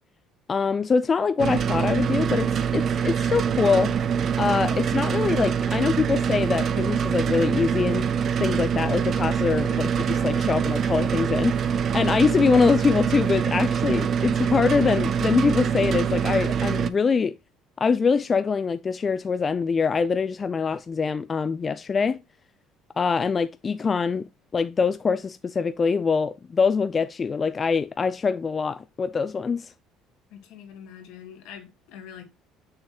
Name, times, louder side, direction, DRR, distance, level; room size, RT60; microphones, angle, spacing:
voice 1, 0.5-3.9 4.4-8.1 8.4-17.3 17.8-22.2 23.0-29.7, left 5 dB, 30° left, 0.4 m, -24 dB
sound 1, 1.4-16.9, right 7 dB, 45° right, 0.5 m, -24 dB
voice 2, 30.3-32.2, left 8 dB, 80° left, 1.9 m, -44 dB
6.7 x 5.6 x 2.9 m
supercardioid pair, 100°, 0 cm